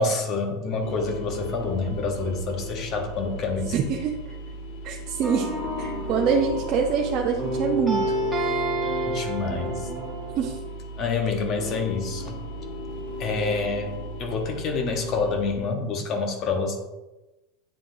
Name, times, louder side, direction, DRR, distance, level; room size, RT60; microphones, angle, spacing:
voice 1, 0.0-3.9 9.1-9.8 11.0-12.4 13.2-13.9 14.2-16.8, left 4 dB, 40° left, 4 dB, 1.2 m, -27 dB
sound 1, 0.8-15.6, equal, 70° left, 1.3 m, -36 dB
voice 2, 3.7-4.3 4.8-8.5 10.4-10.6, right 6 dB, 45° right, 1 dB, 0.6 m, -26 dB
sound 2, 5.2-7.1 7.4-10.5, right 1 dB, 10° right, 1.7 m, -29 dB
9.2 x 3.7 x 2.7 m, 1.1 s
supercardioid pair, 130°, 0 cm